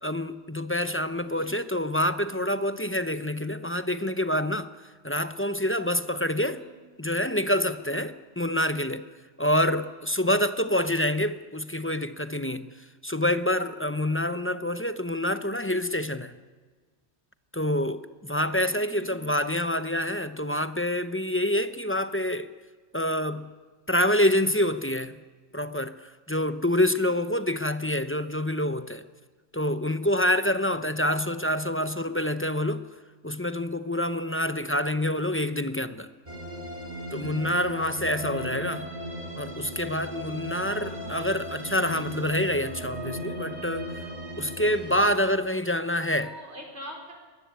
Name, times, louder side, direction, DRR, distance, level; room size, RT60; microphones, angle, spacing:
voice 1, 0.0-4.7 5.0-6.6 7.0-9.0 9.4-12.7 13.0-16.3 17.5-22.5 22.9-23.5 23.9-25.2 25.5-29.0 29.5-32.9 33.2-36.1 37.1-38.9 39.4-43.9 44.4-46.3, left 1 dB, 10° left, 0.7 m, -27 dB
voice 2, 18.6-19.3 27.0-27.1 38.3-38.8 40.6-41.2 45.0-45.3 46.2-47.1, equal, 65° right, 4.8 m, -45 dB
sound 1, 36.3-45.1, equal, 35° right, 3.5 m, -37 dB
23.0 x 20.0 x 8.3 m
omnidirectional pair, 1.2 m